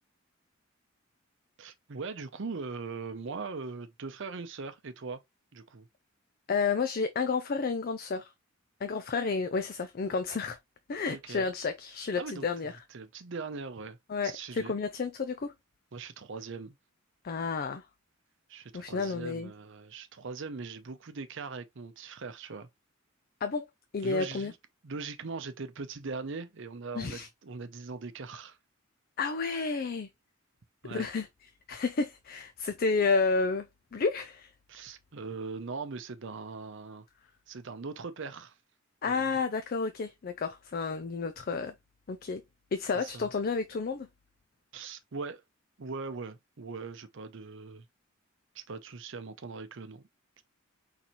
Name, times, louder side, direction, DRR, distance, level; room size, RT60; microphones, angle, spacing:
voice 1, 1.6-5.2 5.5-5.9 11.1-11.5 12.2-12.5 12.9-14.0 14.2-14.7 15.9-16.7 18.5-22.7 24.0-24.6 24.8-28.6 30.8-31.1 34.7-37.0 37.5-38.5 39.0-39.3 42.9-43.3 44.7-45.4 45.8-47.8 48.5-50.1 50.4-50.5, right 4 dB, 60° right, 0.6 m, -40 dB
voice 2, 6.5-8.3 8.8-10.6 10.9-12.7 14.1-15.5 17.2-17.8 18.7-19.5 23.4-23.7 23.9-24.5 26.9-27.3 29.2-30.1 30.9-31.3 31.7-34.5 39.0-41.7 42.1-42.4 42.7-44.1, left 4 dB, 45° left, 0.4 m, -31 dB
4.3 x 3.9 x 2.9 m
head